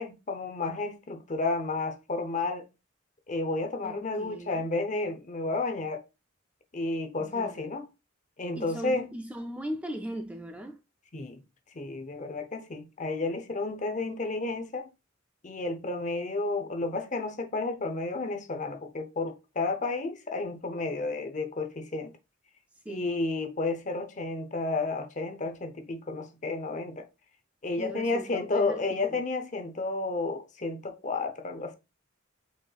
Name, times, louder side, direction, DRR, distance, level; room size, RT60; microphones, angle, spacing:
voice 1, 0.0-2.7 3.3-6.0 6.7-7.8 8.4-9.1 11.1-11.4 11.7-14.9 15.4-22.1 22.9-27.0 27.6-31.8, left 3 dB, 35° left, 0.6 m, -31 dB
voice 2, 3.8-4.7 7.2-7.6 8.5-10.8 22.9-23.1 27.8-29.2, right 1 dB, 5° right, 0.3 m, -39 dB
5.2 x 4.3 x 2.3 m
head